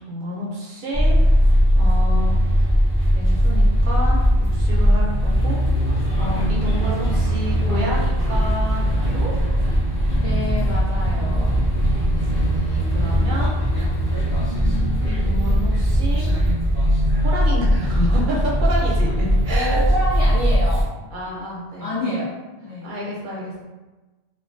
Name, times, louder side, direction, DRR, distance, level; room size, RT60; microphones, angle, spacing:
voice 1, 0.1-1.2 1.7-2.3 3.1-5.6 6.1-9.3 12.1-16.3 17.2-19.8 21.1-21.9 22.8-23.6, equal, 55° right, -4 dB, 0.6 m, -30 dB
sound 1, 0.9-20.8, equal, 15° right, 0.6 m, -19 dB
voice 2, 10.2-11.6 19.5-20.9 21.8-22.9, left 1 dB, 70° left, -8 dB, 0.3 m, -28 dB
2.3 x 2.2 x 2.5 m, 1.2 s
omnidirectional pair, 1.3 m